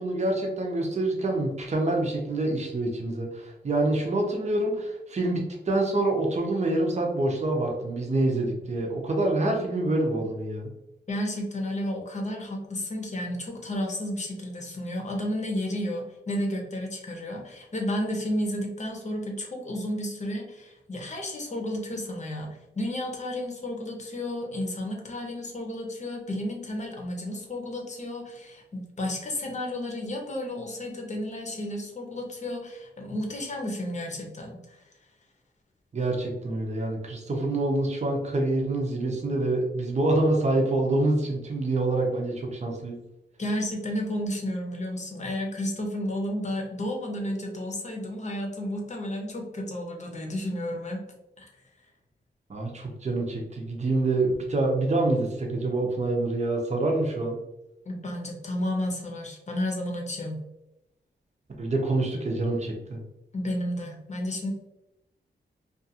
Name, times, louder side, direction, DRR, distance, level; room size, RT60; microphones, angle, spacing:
voice 1, 0.0-10.7 35.9-42.9 52.5-57.4 61.6-63.0, right 2 dB, 40° right, 0 dB, 0.7 m, -26 dB
voice 2, 11.1-34.8 43.4-51.0 51.4-51.5 57.9-60.4 63.3-64.5, left 1 dB, 40° left, 1 dB, 0.7 m, -32 dB
2.5 x 2.4 x 2.7 m, 0.90 s
wide cardioid pair, 80°, 18 cm